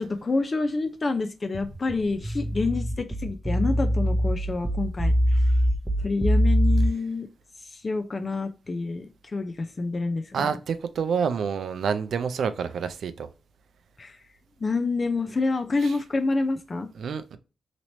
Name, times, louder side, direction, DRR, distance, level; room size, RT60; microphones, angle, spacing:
voice 1, 0.0-5.4 6.0-7.3 7.7-10.5 14.0-14.2 14.6-16.9, left 3 dB, 45° left, 0.4 m, -28 dB
sound 1, 1.5-6.9, equal, 10° right, 0.7 m, -23 dB
voice 2, 10.3-13.3 15.8-15.9 16.9-17.4, right 6 dB, 75° right, 0.4 m, -28 dB
3.0 x 2.9 x 2.7 m
supercardioid pair, 45°, 0 cm